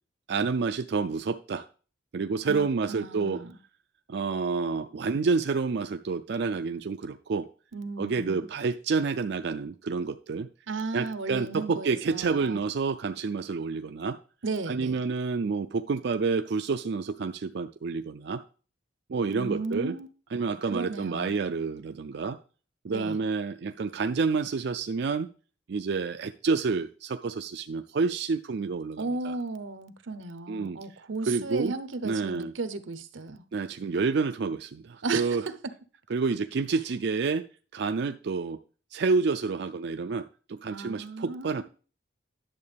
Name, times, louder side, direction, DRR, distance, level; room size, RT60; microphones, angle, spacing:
voice 1, 0.3-1.7 2.1-3.4 4.1-7.5 8.0-10.5 10.9-14.2 14.7-18.4 19.1-20.0 20.3-22.4 22.8-25.3 25.7-29.3 30.5-30.8 31.3-31.7 32.0-32.5 33.5-35.4 36.1-37.4 37.7-38.6 38.9-41.6, right 4 dB, 60° right, 0.4 m, -29 dB
voice 2, 2.5-3.6 7.7-8.5 10.7-12.6 14.4-15.0 19.3-20.1 20.7-21.4 22.9-23.2 29.0-33.4 35.0-35.5 40.7-41.6, right 3 dB, 85° right, 0.9 m, -35 dB
10.5 x 7.3 x 3.4 m
head